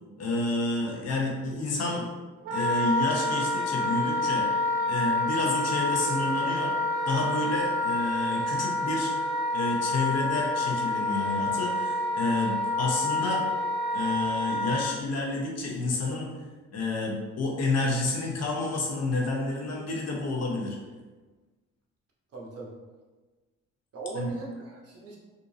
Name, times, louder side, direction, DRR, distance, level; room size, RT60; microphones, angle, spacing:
voice 1, 0.2-2.1 2.5-4.5 4.9-6.7 7.0-9.1 9.5-13.5 13.9-16.3 16.7-20.8 24.1-24.3, left 2 dB, 55° left, -1 dB, 0.9 m, -29 dB
Wind instrument woodwind instrument, 2.4-14.9, left 2 dB, 80° right, 0.6 m, -28 dB
voice 2, 22.3-22.7 23.9-25.2, right 3 dB, 50° right, -3 dB, 1.0 m, -39 dB
3.7 x 2.7 x 2.7 m, 1.3 s
cardioid pair, 90°, 30 cm